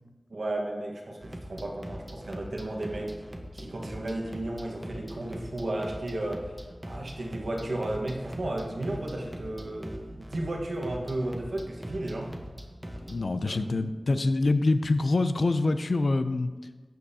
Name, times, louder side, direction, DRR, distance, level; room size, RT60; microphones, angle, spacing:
voice 1, 0.3-3.2 3.5-6.5 6.8-12.3 13.4-13.8, right 1 dB, 75° right, 0 dB, 1.3 m, -34 dB
sound 1, 1.2-13.2, equal, 20° right, 1.0 m, -42 dB
voice 2, 13.1-16.5, left 2 dB, 75° left, 11 dB, 0.4 m, -25 dB
15.0 x 5.4 x 2.8 m, 1.3 s
wide cardioid pair, 50°, 0 cm